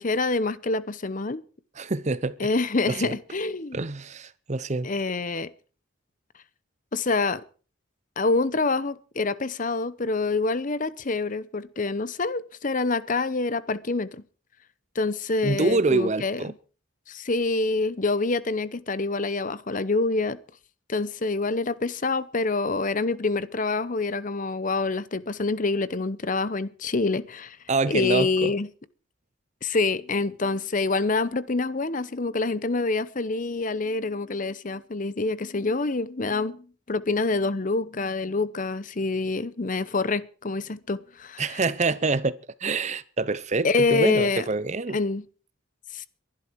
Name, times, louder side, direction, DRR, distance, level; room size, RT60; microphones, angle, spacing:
voice 1, 0.0-1.4 2.4-3.8 4.8-5.5 6.9-7.4 8.2-14.2 14.9-16.4 17.1-20.4 20.9-27.6 27.8-28.7 29.6-41.6 43.6-44.4 44.9-45.2 45.9-46.1, left 3 dB, 40° left, 0.8 m, -26 dB
voice 2, 1.8-2.4 2.9-3.2 3.7-4.9 15.4-16.5 27.7-28.5 41.4-45.0, right 3 dB, 35° right, 0.7 m, -26 dB
22.5 x 11.5 x 4.6 m
head